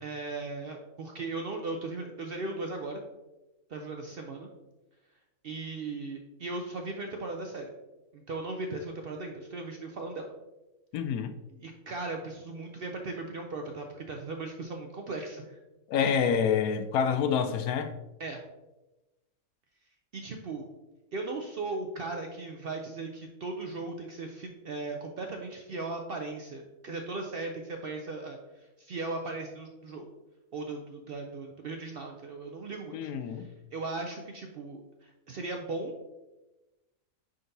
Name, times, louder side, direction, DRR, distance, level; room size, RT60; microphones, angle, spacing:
voice 1, 0.0-3.0 3.7-4.5 5.4-7.7 8.1-10.3 11.6-15.6 18.2-18.4 20.1-20.7 21.1-30.1 30.5-36.1, right 3 dB, 65° right, 0.6 m, -37 dB
voice 2, 10.9-11.3 15.9-17.9 32.9-33.5, left 7 dB, 85° left, 1.1 m, -27 dB
9.3 x 3.9 x 2.7 m
omnidirectional pair, 1.5 m